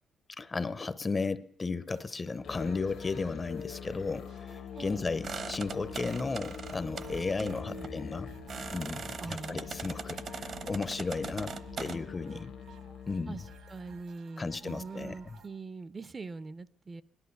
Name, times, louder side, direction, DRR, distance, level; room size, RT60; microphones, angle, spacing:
voice 1, 0.4-8.3 8.7-12.5 13.1-13.4 14.4-15.4, left 4 dB, 30° left, 0.6 m, -34 dB
sound 1, 1.9-15.5, right 7 dB, 75° right, 1.8 m, -57 dB
Musical instrument, 2.4-14.0, left 8 dB, 70° left, 1.2 m, -44 dB
voice 2, 4.8-5.1 7.4-7.9 9.2-9.9 12.3-12.4 13.3-13.4 13.7-17.0, right 4 dB, 30° right, 0.5 m, -43 dB
sound 2, 5.2-12.0, right 5 dB, 50° right, 0.9 m, -41 dB
16.5 x 11.5 x 7.0 m
cardioid pair, 90°, 0 cm